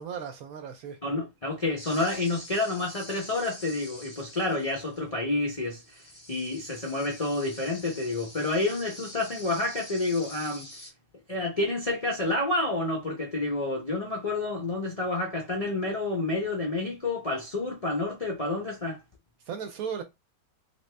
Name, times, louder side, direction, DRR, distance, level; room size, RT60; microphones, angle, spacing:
voice 1, 0.0-1.0 19.4-20.0, right 7 dB, 70° right, 0.9 m, -36 dB
voice 2, 1.0-10.7 11.3-19.0, left 2 dB, 60° left, 0.3 m, -29 dB
sound 1, 1.8-5.1 5.6-10.9, left 1 dB, 15° left, 0.6 m, -46 dB
3.0 x 2.6 x 3.2 m
omnidirectional pair, 1.9 m